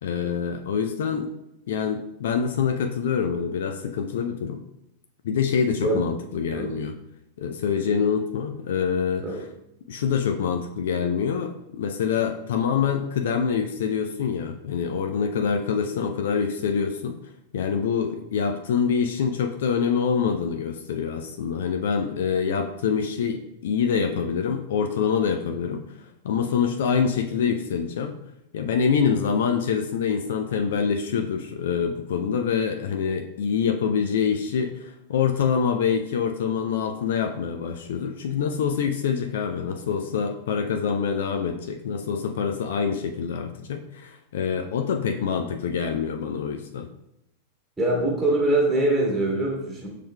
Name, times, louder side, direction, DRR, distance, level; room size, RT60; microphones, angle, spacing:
voice 1, 0.0-1.3 1.7-4.6 5.2-6.9 7.4-9.4 9.9-17.2 17.5-25.8 26.2-28.2 28.5-46.9, left 6 dB, 60° left, 5 dB, 0.3 m, -25 dB
voice 2, 47.8-49.9, right 2 dB, 10° right, -2 dB, 1.6 m, -23 dB
6.8 x 3.2 x 2.2 m, 0.82 s
figure-of-eight pair, 90°, 0 cm